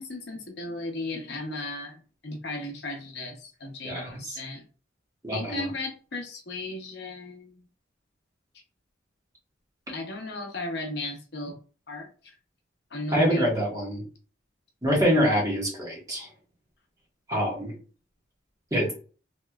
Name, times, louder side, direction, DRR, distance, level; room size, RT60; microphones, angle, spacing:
voice 1, 0.0-4.6 5.3-7.7 9.9-11.6 11.9-12.1 12.9-13.5, left 2 dB, 60° left, 2 dB, 0.8 m, -35 dB
voice 2, 3.8-4.4 5.2-5.7 13.1-14.0 14.8-16.3 17.3-17.7 18.7-18.9, equal, 20° right, -4 dB, 1.2 m, -25 dB
3.1 x 2.9 x 2.3 m, 0.37 s
head